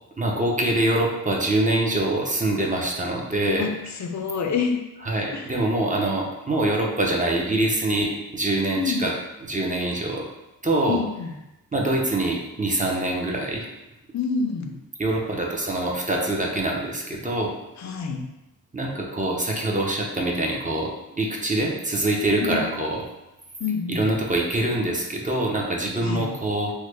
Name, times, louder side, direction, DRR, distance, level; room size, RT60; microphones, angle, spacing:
voice 1, 0.2-3.6 5.0-9.1 9.5-10.3 10.6-11.0 11.7-13.7 15.0-17.5 18.7-23.0 23.9-26.7, right 1 dB, 20° right, -1 dB, 0.5 m, -24 dB
voice 2, 3.6-4.8 5.3-5.5 8.8-9.1 10.9-11.3 14.1-14.7 17.8-18.2 22.4-22.6 23.6-24.1 26.0-26.3, left 5 dB, 50° left, 4 dB, 0.4 m, -27 dB
3.1 x 2.1 x 3.2 m, 0.95 s
wide cardioid pair, 80°, 36 cm